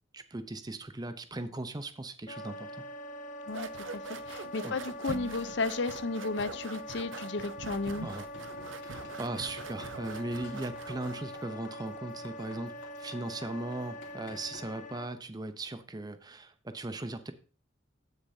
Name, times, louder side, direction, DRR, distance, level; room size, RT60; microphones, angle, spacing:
voice 1, 0.1-2.7 4.6-4.8 8.0-8.3 8.8-17.3, right 2 dB, 20° right, 10 dB, 0.7 m, -38 dB
Wind instrument woodwind instrument, 2.3-15.1, left 1 dB, 40° left, 1.1 m, -44 dB
sound 1, 3.5-11.3, right 5 dB, 90° right, 0.7 m, -44 dB
voice 2, 3.9-8.1, left 3 dB, 70° left, 14 dB, 0.7 m, -34 dB
sound 2, 7.7-14.6, left 2 dB, 85° left, 2.9 m, -53 dB
16.0 x 6.7 x 2.7 m, 0.36 s
head